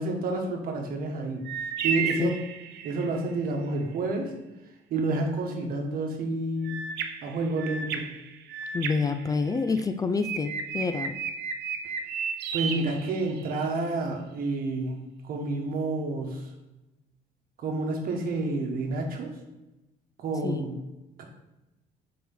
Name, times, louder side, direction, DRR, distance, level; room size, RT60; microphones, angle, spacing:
voice 1, 0.0-1.4 1.8-2.3 2.8-4.3 4.9-6.7 7.2-8.1 12.5-16.5 17.6-19.3 20.2-20.8 21.2-21.3, right 2 dB, 60° right, 2 dB, 1.3 m, -29 dB
sound 1, 1.5-3.2 6.6-9.8 10.2-13.7, right 6 dB, 75° right, 0.6 m, -33 dB
voice 2, 8.7-11.1 20.4-20.6, left 4 dB, 20° left, 8 dB, 0.3 m, -27 dB
4.3 x 4.3 x 5.3 m, 0.98 s
cardioid pair, 110°, 17 cm